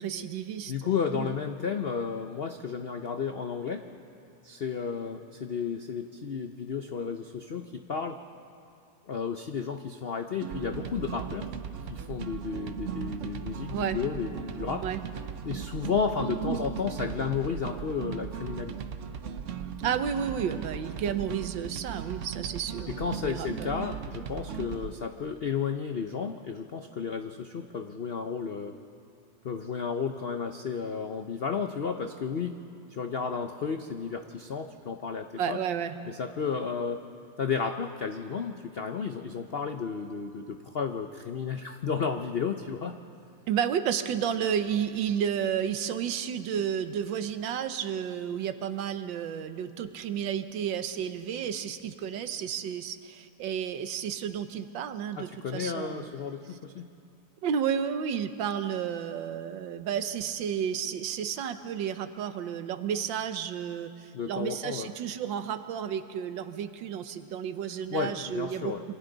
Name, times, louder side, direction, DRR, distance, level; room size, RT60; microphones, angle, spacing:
voice 1, 0.0-0.7 1.1-1.4 13.7-14.0 14.8-15.0 16.4-16.6 19.8-23.7 35.4-35.9 43.5-56.1 57.4-68.9, right 8 dB, 85° right, 10 dB, 1.6 m, -32 dB
voice 2, 0.7-3.9 4.4-8.2 9.1-11.5 11.9-14.9 15.4-18.8 22.9-28.8 29.4-32.6 32.9-35.6 36.1-37.0 37.4-43.0 55.2-56.9 64.1-64.9 67.9-68.8, left 6 dB, 70° left, 6 dB, 0.5 m, -32 dB
sound 1, 10.4-24.9, right 7 dB, 55° right, 0.8 m, -37 dB
27.5 x 25.0 x 4.0 m, 2.5 s
omnidirectional pair, 2.0 m